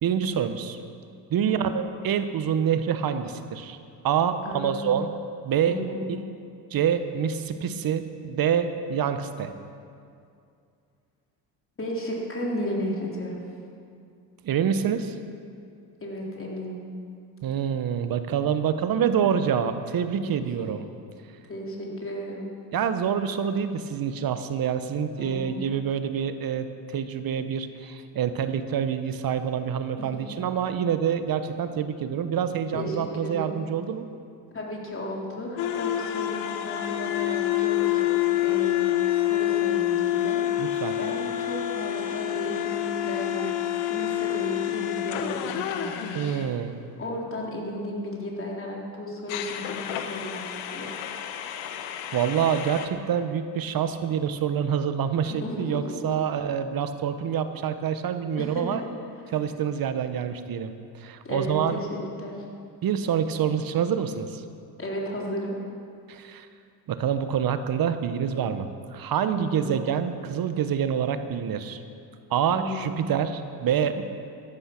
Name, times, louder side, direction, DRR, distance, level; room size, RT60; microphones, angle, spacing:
voice 1, 0.0-0.8 1.3-3.8 4.0-5.1 5.4-5.8 6.1-6.2 6.7-9.5 14.4-15.1 17.4-20.8 22.7-34.1 40.6-40.9 46.1-46.7 52.1-58.8 59.3-60.7 60.9-61.8 62.8-64.4 66.1-66.5 66.9-71.8 72.3-74.0, right 8 dB, 45° right, 10 dB, 1.2 m, -26 dB
voice 2, 4.4-5.0 5.7-6.0 11.8-13.4 16.0-16.8 20.4-20.9 21.5-22.5 25.2-25.6 30.3-30.4 32.7-33.6 34.5-38.1 38.4-40.6 41.0-46.2 47.0-50.4 50.7-50.9 55.4-56.2 58.4-58.6 61.2-62.3 64.8-65.6 69.3-69.8 72.5-73.0, left 1 dB, 25° left, -2 dB, 3.9 m, -34 dB
sound 1, 35.6-46.5 49.3-52.9, left 13 dB, 70° left, 1.1 m, -28 dB
13.5 x 11.5 x 6.0 m, 2.4 s
hypercardioid pair, 70°, 47 cm